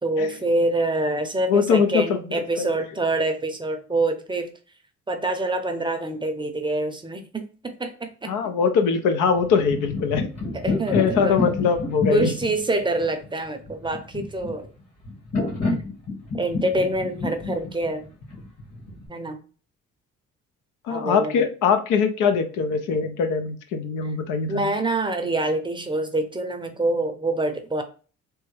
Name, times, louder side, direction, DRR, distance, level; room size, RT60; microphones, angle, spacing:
voice 1, 0.0-4.5 5.1-8.3 10.5-11.4 12.1-14.7 16.3-18.1 19.1-19.4 20.9-21.4 24.5-27.8, right 2 dB, 15° right, 6 dB, 0.5 m, -26 dB
voice 2, 1.5-2.2 2.6-2.7 8.3-10.3 10.9-12.3 20.9-24.7, left 6 dB, 90° left, 7 dB, 0.6 m, -22 dB
sound 1, 9.4-19.1, left 3 dB, 55° left, 1.6 m, -29 dB
3.4 x 2.1 x 3.1 m, 0.38 s
cardioid pair, 90°, 30 cm